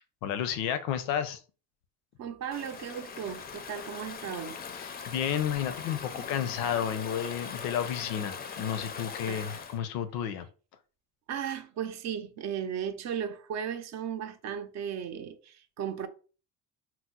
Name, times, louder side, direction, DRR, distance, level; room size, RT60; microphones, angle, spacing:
voice 1, 0.0-1.4 4.7-10.5, left 9 dB, 90° left, 0.6 m, -32 dB
voice 2, 2.2-4.6 9.3-9.4 11.3-16.1, right 8 dB, 55° right, 0.5 m, -36 dB
Stream / Ocean, 2.5-9.8, left 6 dB, 30° left, 0.4 m, -41 dB
3.0 x 2.0 x 3.6 m
cardioid pair, 100°, 33 cm